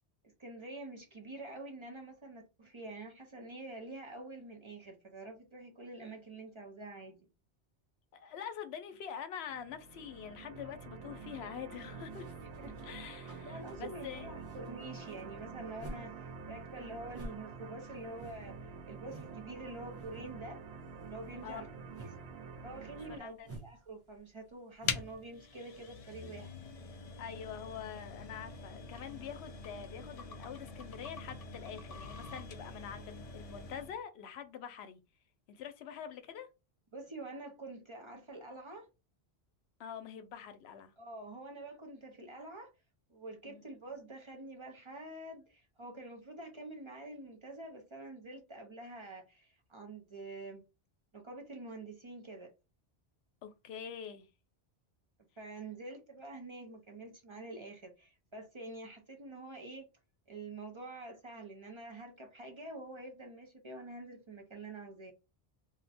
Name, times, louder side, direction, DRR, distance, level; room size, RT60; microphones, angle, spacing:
voice 1, 0.4-7.3 12.6-20.6 21.1-21.7 22.0-22.1 22.6-26.5 36.9-38.9 41.0-42.7 43.1-50.6 51.1-52.5 55.4-59.9 60.3-65.1, right 2 dB, 35° right, 0.5 m, -47 dB
voice 2, 8.1-12.3 12.8-14.3 21.4-21.6 22.9-23.5 27.2-35.0 35.5-36.5 39.8-40.9 43.4-43.6 53.4-54.3, left 8 dB, 75° left, 0.8 m, -45 dB
sound 1, 9.5-23.2, right 5 dB, 70° right, 0.8 m, -48 dB
sound 2, 11.9-16.1 16.4-19.4 19.7-20.4 20.6-25.1, right 2 dB, 15° right, 0.9 m, -52 dB
sound 3, 24.9-34.0, left 4 dB, 60° left, 0.4 m, -44 dB
2.5 x 2.1 x 4.0 m
omnidirectional pair, 1.1 m